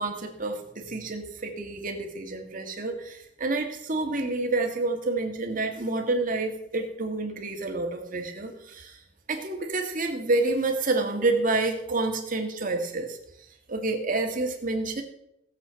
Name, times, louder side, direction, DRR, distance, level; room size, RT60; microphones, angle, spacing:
voice 1, 0.0-9.0 9.3-13.2 13.7-15.0, right 2 dB, 45° right, 3 dB, 1.9 m, -28 dB
16.0 x 8.0 x 5.8 m, 0.79 s
head